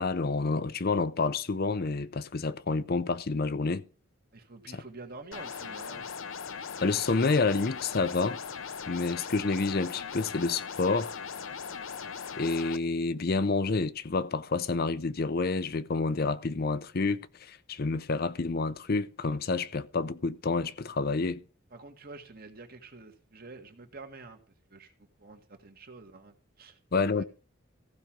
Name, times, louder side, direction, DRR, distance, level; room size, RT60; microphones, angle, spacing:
voice 1, 0.0-3.8 4.7-4.8 6.8-8.4 8.9-11.2 12.4-21.4 26.9-27.2, left 3 dB, 50° left, 0.6 m, -29 dB
voice 2, 4.3-6.1 21.7-24.4 24.7-24.9 25.2-26.8 27.1-27.2, right 3 dB, 50° right, 1.9 m, -48 dB
sound 1, 5.3-12.8, left 6 dB, 85° left, 0.8 m, -39 dB
15.0 x 5.1 x 6.0 m
head